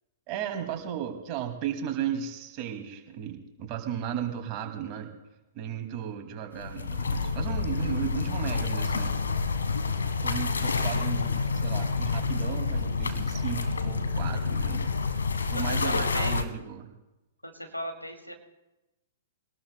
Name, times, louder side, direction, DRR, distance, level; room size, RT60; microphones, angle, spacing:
voice 1, 0.3-5.1 5.5-9.2 10.2-14.8 15.5-16.9, right 9 dB, 35° right, 4 dB, 2.3 m, -35 dB
sound 1, 6.5-16.4, left 4 dB, 70° left, 1.4 m, -28 dB
voice 2, 15.5-16.4 17.4-18.3, equal, 90° left, 4 dB, 2.5 m, -36 dB
24.5 x 18.5 x 2.2 m, 0.99 s
figure-of-eight pair, 110°, 0 cm